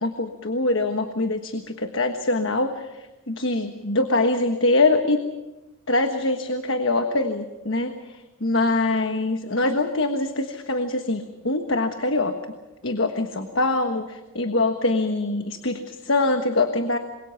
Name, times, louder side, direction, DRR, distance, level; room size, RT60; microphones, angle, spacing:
voice 1, 0.0-5.2 5.9-12.4 12.8-17.0, left 2 dB, 60° left, 6 dB, 1.3 m, -24 dB
27.5 x 22.5 x 5.9 m, 1.0 s
head